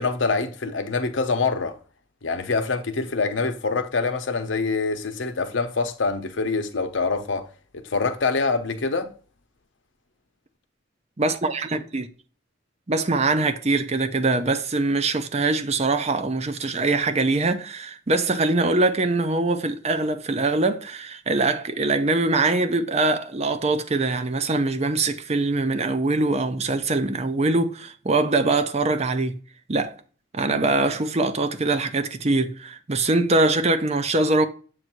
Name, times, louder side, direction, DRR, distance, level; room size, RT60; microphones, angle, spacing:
voice 1, 0.0-1.8 2.2-7.5 7.7-9.1, left 4 dB, 80° left, 0.9 m, -25 dB
voice 2, 11.2-12.1 12.9-29.4 29.7-29.9 30.3-34.5, right 2 dB, 35° right, 0.6 m, -23 dB
7.7 x 2.7 x 5.9 m
head